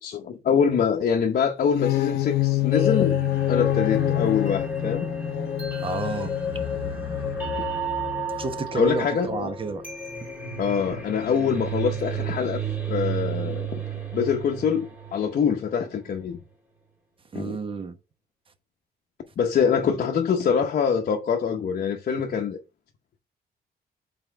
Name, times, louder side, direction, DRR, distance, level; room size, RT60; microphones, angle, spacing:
voice 1, 0.0-3.2 3.5-5.1 8.7-9.5 10.6-12.6 12.9-13.7 14.1-16.4 17.3-17.5 19.4-22.6, left 7 dB, 55° left, 0.8 m, -24 dB
sound 1, 1.6-7.6, left 16 dB, 90° left, 0.5 m, -27 dB
sound 2, 2.7-15.7, right 1 dB, 10° right, 2.1 m, -31 dB
voice 2, 5.8-6.3 8.4-9.8 17.3-18.0, right 4 dB, 30° right, 0.9 m, -31 dB
5.6 x 4.2 x 4.4 m
wide cardioid pair, 150°, 17 cm